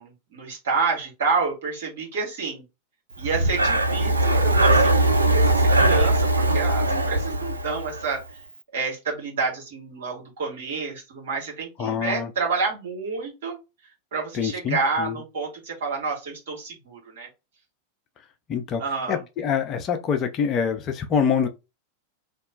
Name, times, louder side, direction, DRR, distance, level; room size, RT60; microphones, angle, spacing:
voice 1, 0.0-2.6 3.2-8.4 8.7-13.6 14.1-17.3 18.8-19.2, right 4 dB, 60° right, 1.6 m, -29 dB
Breathing, 3.2-8.2, right 1 dB, 80° right, 0.4 m, -20 dB
voice 2, 11.8-12.3 14.3-15.2 18.5-18.8 19.1-21.5, left 7 dB, 35° left, 0.6 m, -25 dB
2.9 x 2.2 x 3.9 m
figure-of-eight pair, 90°, 0 cm